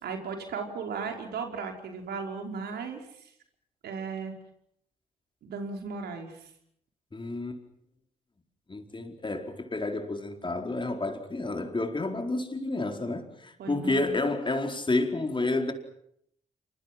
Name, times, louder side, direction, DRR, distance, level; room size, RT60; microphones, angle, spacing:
voice 1, 0.0-3.3 3.8-4.3 5.4-6.5 13.6-14.2, right 5 dB, 65° right, 5.0 m, -36 dB
voice 2, 7.1-7.6 8.7-15.7, left 2 dB, 25° left, 4.7 m, -30 dB
28.5 x 28.0 x 6.2 m
hypercardioid pair, 40°, 18 cm